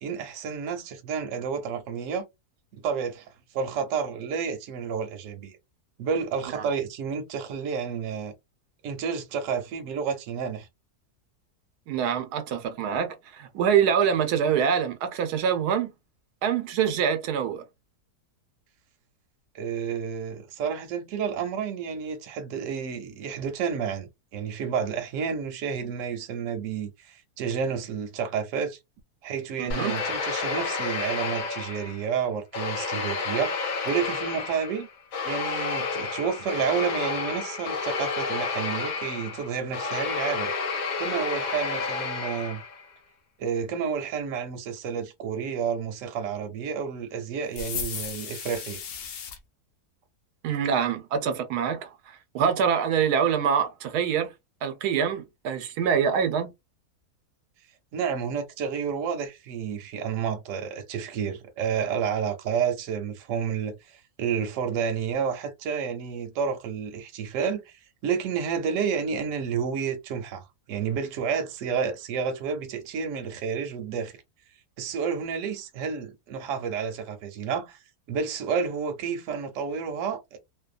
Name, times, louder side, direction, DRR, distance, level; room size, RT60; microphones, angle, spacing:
voice 1, 0.0-2.3 2.7-5.6 6.0-8.3 8.8-10.7 19.5-28.8 29.2-33.5 33.8-34.9 35.2-40.5 41.0-42.6 43.4-48.8 57.9-74.1 74.8-77.8 78.1-80.4, right 6 dB, 65° right, 0.9 m, -30 dB
voice 2, 11.9-15.9 16.4-17.6 29.6-30.0 50.4-54.3 54.6-56.5, right 7 dB, 90° right, 1.1 m, -25 dB
sound 1, 29.7-32.1 32.5-42.9, left 4 dB, 70° left, 1.1 m, -30 dB
sound 2, 47.5-49.4, left 7 dB, 90° left, 0.5 m, -35 dB
2.7 x 2.2 x 2.4 m
omnidirectional pair, 1.6 m